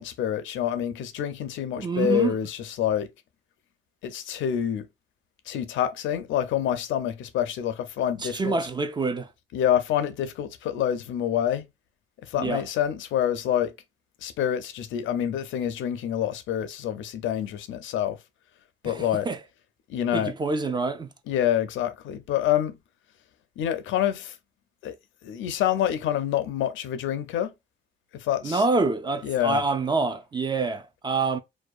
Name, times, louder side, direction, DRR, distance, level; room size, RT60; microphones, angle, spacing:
voice 1, 0.0-3.1 4.0-4.9 5.5-8.6 9.5-11.7 12.3-13.7 14.2-18.2 18.8-19.3 19.9-20.3 21.3-22.8 23.6-24.4 24.8-24.9 25.2-27.5 28.1-28.7 29.2-29.6, left 10 dB, 75° left, 0.4 m, -27 dB
voice 2, 1.8-2.4 8.2-9.3 12.3-12.6 18.8-19.4 20.1-21.1 28.4-31.4, right 3 dB, 20° right, 0.3 m, -26 dB
2.6 x 2.2 x 2.3 m
cardioid pair, 90°, 20 cm